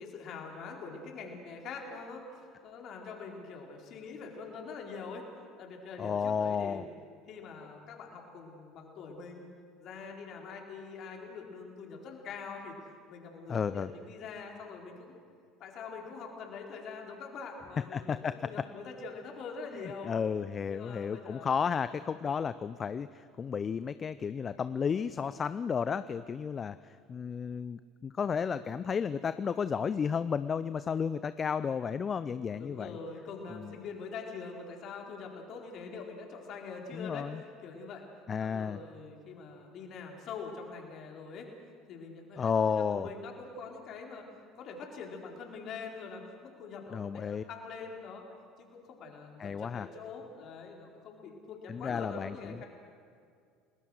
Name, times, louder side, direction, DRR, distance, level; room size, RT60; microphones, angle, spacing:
voice 1, 0.0-5.3 5.6-6.9 7.3-9.4 9.8-12.8 13.1-15.1 15.6-20.1 20.7-21.6 22.1-22.4 32.5-37.3 37.6-38.1 38.4-41.5 41.9-44.2 44.6-48.3 48.6-52.7, left 5 dB, 50° left, 1 dB, 4.4 m, -44 dB
voice 2, 6.0-6.8 13.5-13.9 17.9-18.4 20.0-33.0 33.5-33.7 36.9-37.4 38.3-38.8 42.4-43.1 46.9-47.4 49.4-49.9 51.7-52.6, left 6 dB, 35° left, 14 dB, 0.6 m, -32 dB
30.0 x 20.0 x 6.5 m, 2.2 s
hypercardioid pair, 65°, 0 cm